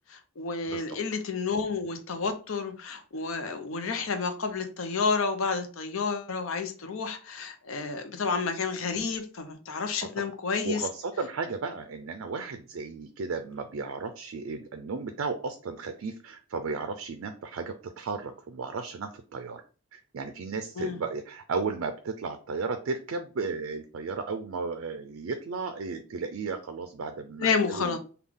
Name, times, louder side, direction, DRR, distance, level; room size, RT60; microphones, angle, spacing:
voice 1, 0.1-10.9 20.8-21.0 27.4-28.0, left 5 dB, 70° left, 0.6 m, -30 dB
voice 2, 0.7-1.0 10.0-10.1 10.6-19.6 19.9-28.0, right 4 dB, 65° right, 0.4 m, -34 dB
3.6 x 2.3 x 3.4 m
head